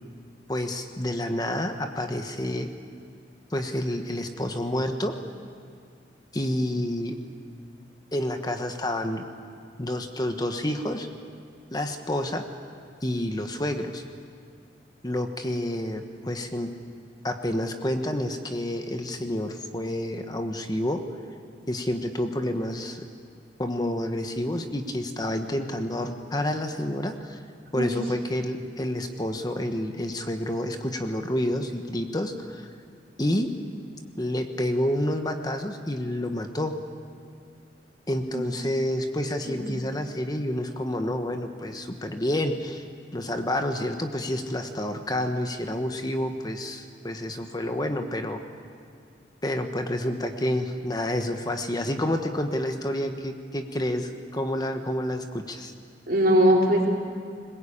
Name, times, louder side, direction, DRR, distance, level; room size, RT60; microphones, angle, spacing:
voice 1, 0.5-2.7 3.5-5.2 6.3-7.2 8.1-9.2 9.8-11.1 11.7-12.4 13.0-14.0 15.0-16.7 17.2-21.0 21.7-23.0 23.6-27.4 27.7-32.7 33.2-33.5 34.2-36.7 38.1-42.8 43.1-48.4 49.4-55.7, left 1 dB, 25° left, 6 dB, 1.2 m, -29 dB
voice 2, 56.1-56.9, equal, 55° right, -1 dB, 3.9 m, -20 dB
21.5 x 20.5 x 8.7 m, 2.3 s
head